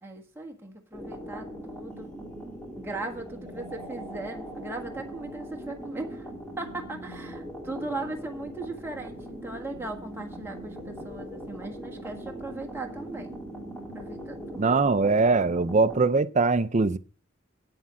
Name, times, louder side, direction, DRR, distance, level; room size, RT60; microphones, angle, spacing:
voice 1, 0.0-2.1 2.8-6.3 6.6-13.4 13.9-14.7, right 2 dB, 10° right, 1.6 m, -38 dB
sound 1, 0.9-16.1, right 1 dB, 5° left, 3.3 m, -40 dB
voice 2, 14.6-17.0, right 3 dB, 35° right, 0.5 m, -22 dB
8.8 x 7.8 x 7.3 m
head